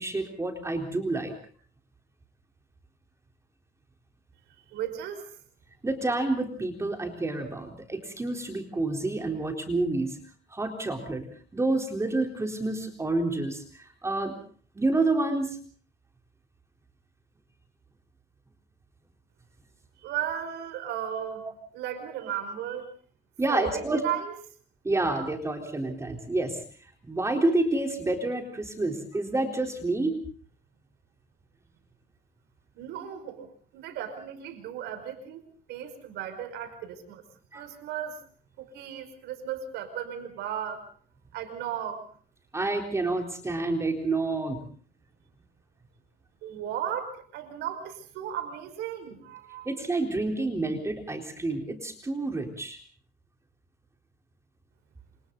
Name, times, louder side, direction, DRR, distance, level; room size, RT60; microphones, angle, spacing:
voice 1, 0.0-1.3 5.8-10.2 10.5-11.3 11.5-14.3 14.8-15.6 23.4-24.0 24.8-26.6 27.0-30.2 37.5-37.7 42.5-44.6 49.7-52.8, right 2 dB, 15° right, 4 dB, 3.9 m, -28 dB
voice 2, 4.7-5.4 20.0-21.5 21.7-22.9 23.5-24.3 32.8-33.5 33.7-37.2 37.5-38.2 38.6-40.8 41.3-42.1 46.4-49.7, right 9 dB, 85° right, 8 dB, 5.5 m, -35 dB
28.0 x 27.0 x 4.0 m, 0.44 s
cardioid pair, 110°, 17 cm